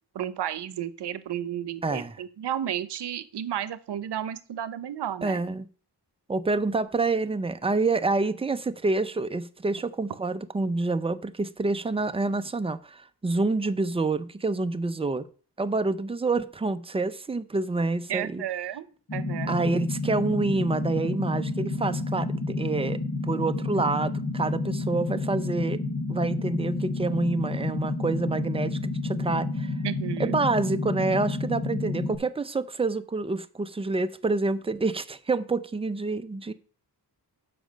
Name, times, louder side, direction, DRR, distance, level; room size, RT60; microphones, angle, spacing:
voice 1, 0.1-5.4 18.1-18.9 19.1-19.6 29.8-30.4, right 10 dB, 75° right, 0.8 m, -32 dB
voice 2, 1.8-2.1 5.2-5.7 6.3-15.3 15.6-18.4 19.5-25.8 26.1-29.7 30.2-36.5, right 3 dB, 15° right, 0.4 m, -27 dB
sound 1, 19.1-32.2, left 3 dB, 50° left, 2.1 m, -30 dB
7.3 x 5.0 x 6.2 m
wide cardioid pair, 120°, 41 cm